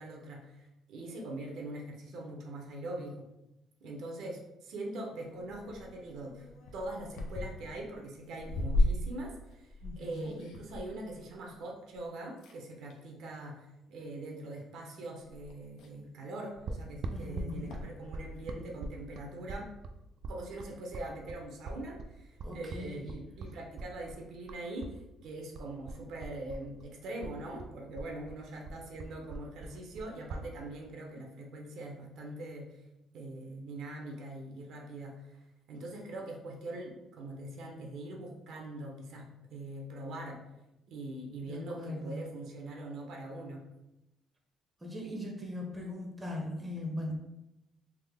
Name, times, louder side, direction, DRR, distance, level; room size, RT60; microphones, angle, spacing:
voice 1, 0.0-3.3 3.8-6.5 6.7-19.7 20.3-32.8 33.1-35.3 35.7-40.4 40.9-43.6, right 1 dB, 70° right, 0 dB, 0.7 m, -42 dB
sound 1, 5.2-12.0 12.4-13.1 14.0-14.3 14.9-15.0 15.2-18.4, left 1 dB, 80° left, 0.5 m, -37 dB
voice 2, 9.8-10.4 17.1-17.8 22.4-23.1 41.4-42.3 44.8-47.1, left 1 dB, 10° right, -1 dB, 0.6 m, -40 dB
sound 2, 16.7-25.0 25.2-26.9 27.2-30.5, right 3 dB, 50° right, 0.3 m, -42 dB
3.5 x 2.0 x 3.4 m, 0.92 s
cardioid pair, 125°, 0 cm